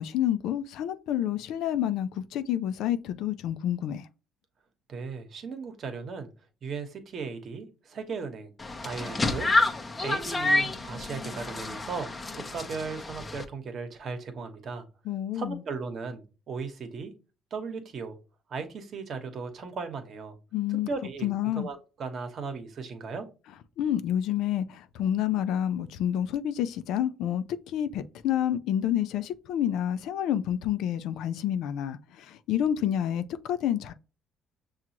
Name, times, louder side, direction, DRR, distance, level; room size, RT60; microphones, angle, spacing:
voice 1, 0.0-4.1 15.1-15.6 20.5-20.9 21.2-21.7 23.8-33.9, left 10 dB, 80° left, 0.4 m, -29 dB
voice 2, 4.9-6.3 6.6-8.5 8.8-9.5 10.0-14.9 15.3-17.1 17.5-18.2 18.5-20.3 20.7-23.3, right 4 dB, 55° right, 1.0 m, -37 dB
sound 1, 8.6-13.4, left 2 dB, 25° left, 0.7 m, -29 dB
6.0 x 2.4 x 2.8 m
supercardioid pair, 85°, 0 cm